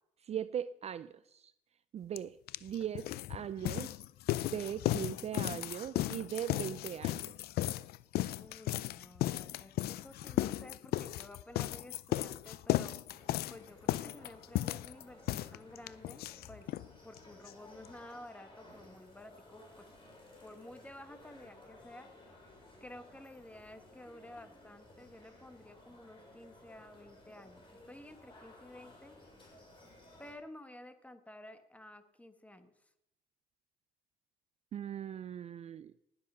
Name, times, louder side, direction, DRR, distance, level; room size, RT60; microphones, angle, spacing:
voice 1, 0.2-1.5 1.9-3.9 4.5-7.2 34.7-35.9, right 9 dB, 40° right, 15 dB, 0.4 m, -39 dB
sound 1, 2.2-2.3 2.5-16.9 17.1-17.2 17.5-17.6 17.8-17.9, left 15 dB, 70° left, 0.5 m, -35 dB
voice 2, 8.4-13.0 13.5-16.7 17.0-19.9 20.4-22.1 22.8-29.2 30.2-32.7, left 1 dB, 10° left, 9 dB, 1.3 m, -52 dB
sound 2, 13.1-30.3, left 1 dB, 30° left, 6.0 m, -57 dB
19.0 x 7.8 x 5.6 m, 0.83 s
cardioid pair, 110°, 17 cm